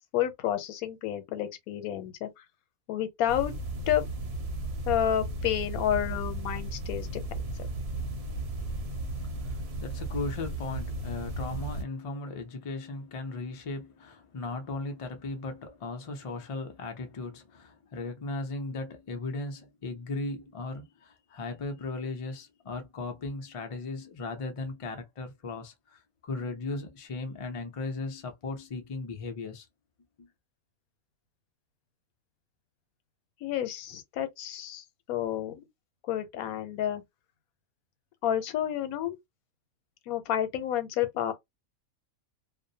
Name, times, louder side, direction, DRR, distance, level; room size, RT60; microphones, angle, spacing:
voice 1, 0.1-2.3 2.9-3.5 3.9-4.1 4.9-7.2 33.4-35.7 36.1-37.0 38.2-39.2 40.1-41.3, left 11 dB, 90° left, 1.1 m, -30 dB
sound 1, 3.3-11.8, right 2 dB, 55° right, 0.8 m, -35 dB
voice 2, 9.2-29.7 30.2-30.3, left 3 dB, 60° left, 0.3 m, -37 dB
2.5 x 2.0 x 2.6 m
omnidirectional pair, 1.5 m